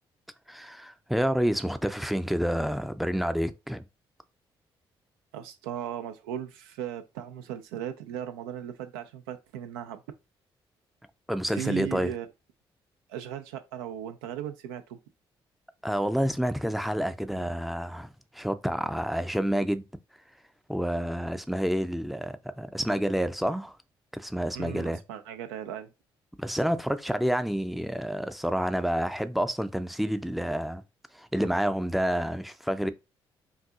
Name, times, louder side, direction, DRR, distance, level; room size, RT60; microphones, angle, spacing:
voice 1, 0.5-3.8 11.3-12.1 15.8-19.9 20.7-23.8 24.1-25.0 26.4-30.8 31.1-32.9, equal, ahead, 0.5 m, -29 dB
voice 2, 5.3-10.0 11.5-12.3 13.1-15.0 17.3-17.5 24.6-25.9, right 10 dB, 70° right, 0.4 m, -37 dB
5.3 x 2.6 x 2.4 m
figure-of-eight pair, 40°, 13 cm